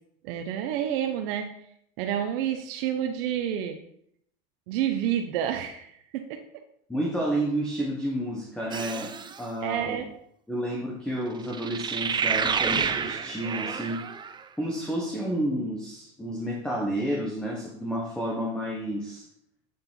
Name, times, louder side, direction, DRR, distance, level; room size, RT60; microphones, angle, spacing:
voice 1, 0.2-1.5 2.0-3.8 4.7-6.4 9.6-10.1, right 10 dB, 70° right, 5 dB, 0.8 m, -29 dB
voice 2, 6.9-10.0 10.5-14.0 14.6-19.3, right 1 dB, 5° left, -2 dB, 1.1 m, -30 dB
sound 1, 8.7-9.4 11.5-14.4, right 6 dB, 15° right, 0.4 m, -29 dB
7.9 x 4.3 x 5.4 m, 0.71 s
supercardioid pair, 125°, 29 cm